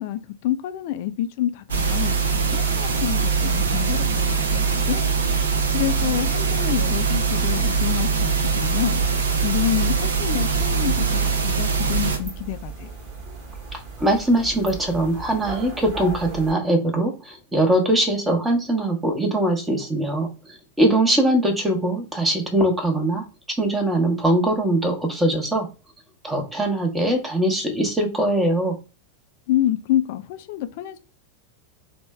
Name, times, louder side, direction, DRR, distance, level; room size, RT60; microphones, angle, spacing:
voice 1, 0.0-12.9 29.5-31.0, left 12 dB, 50° left, 0.4 m, -28 dB
sound 1, 1.7-12.2, right 5 dB, 65° right, 0.6 m, -22 dB
sound 2, 10.5-16.5, right 4 dB, 40° right, 1.2 m, -37 dB
voice 2, 13.7-23.2 23.6-25.7 26.2-28.7, right 1 dB, 10° right, 1.0 m, -22 dB
3.0 x 2.2 x 3.3 m
figure-of-eight pair, 90°, 0 cm